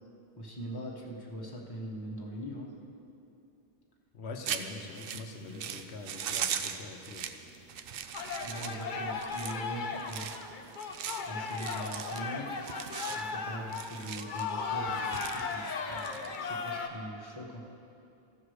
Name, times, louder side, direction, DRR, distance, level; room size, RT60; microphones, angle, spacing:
voice 1, 0.4-2.8 4.5-4.8 5.3-5.7 8.4-10.8 11.2-12.6 13.1-17.6, equal, 20° left, -2 dB, 1.1 m, -42 dB
voice 2, 4.1-7.3, left 3 dB, 75° left, 5 dB, 1.0 m, -44 dB
shaking can filled with oatmeal grains or other granules, 4.4-16.8, right 8 dB, 65° right, 0.7 m, -40 dB
sound 1, 8.1-16.9, left 4 dB, 50° left, 0.8 m, -36 dB
14.5 x 4.8 x 6.4 m, 2.7 s
omnidirectional pair, 1.1 m